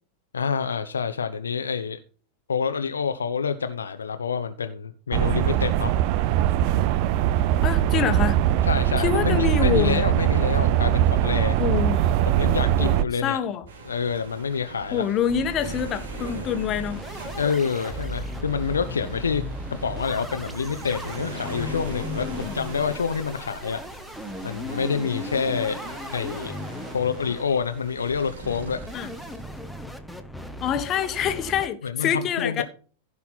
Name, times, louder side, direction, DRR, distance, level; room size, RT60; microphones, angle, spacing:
voice 1, 0.3-2.0 2.5-6.0 7.9-8.1 8.6-11.6 12.3-13.4 13.9-15.1 17.3-19.4 19.8-23.8 24.4-25.8 26.1-26.5 26.9-28.8 31.8-32.6, left 6 dB, 70° left, 0.8 m, -27 dB
sound 1, 5.1-13.0, right 12 dB, 45° right, 0.5 m, -21 dB
voice 2, 7.6-8.4 9.0-10.0 11.6-12.1 12.8-13.6 14.9-17.0 22.2-22.6 28.9-29.1 30.6-32.6, left 8 dB, 30° left, 1.4 m, -26 dB
sound 2, 13.6-14.1 14.4-14.5 14.8-14.9 15.3-31.7, equal, ahead, 1.2 m, -37 dB
sound 3, 13.7-29.7, right 2 dB, 60° right, 2.9 m, -40 dB
16.0 x 5.6 x 4.2 m
figure-of-eight pair, 90°, 0 cm